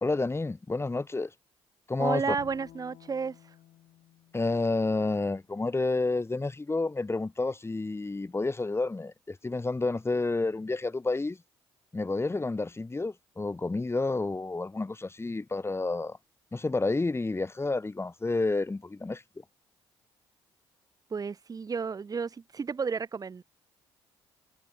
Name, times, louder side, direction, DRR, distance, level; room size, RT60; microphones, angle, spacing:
voice 1, 0.0-1.3 1.9-2.3 4.3-11.4 11.9-16.2 16.5-19.2, left 3 dB, 20° left, 1.4 m, -30 dB
voice 2, 2.0-3.4 21.1-23.4, right 5 dB, 30° right, 0.6 m, -32 dB
Bowed string instrument, 2.4-5.6, left 13 dB, 65° left, 2.0 m, -55 dB
hypercardioid pair, 45°, 13 cm